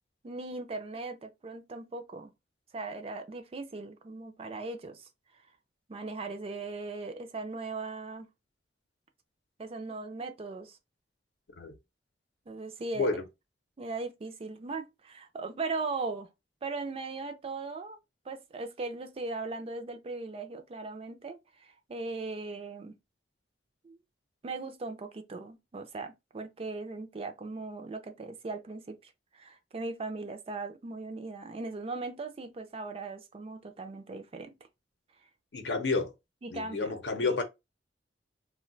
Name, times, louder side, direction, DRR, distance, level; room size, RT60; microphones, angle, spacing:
voice 1, 0.2-2.3 2.7-5.1 5.9-8.3 9.6-10.8 12.5-13.1 13.8-16.3 16.6-18.0 18.3-23.0 23.8-24.0 24.4-34.5 36.4-36.9 37.2-37.3, right 3 dB, 35° right, 0.4 m, -38 dB
voice 2, 35.5-36.1 36.5-37.4, left 3 dB, 75° left, 0.6 m, -30 dB
2.2 x 2.2 x 3.8 m
head